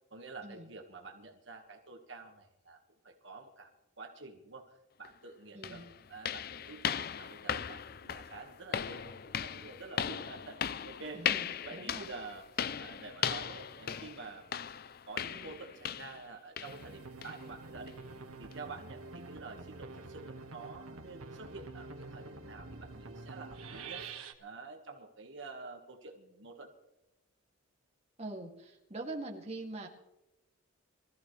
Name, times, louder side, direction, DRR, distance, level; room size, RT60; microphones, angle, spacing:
voice 1, 0.1-2.8 3.0-3.7 4.0-11.2 11.6-14.7 15.1-18.0 18.4-24.0 24.4-26.7, right 3 dB, 60° right, 2 dB, 1.6 m, -48 dB
sound 1, 5.0-5.1 5.6-16.3 16.6-16.8 17.2-17.4 17.9-18.0 18.5-18.6, left 8 dB, 45° left, 0.4 m, -38 dB
voice 2, 5.5-5.9 11.1-12.1 28.2-29.9, right 2 dB, 30° right, 0 dB, 2.4 m, -43 dB
sound 2, 16.6-24.3, right 3 dB, 85° right, 1.6 m, -47 dB
24.0 x 14.0 x 3.3 m, 0.97 s
head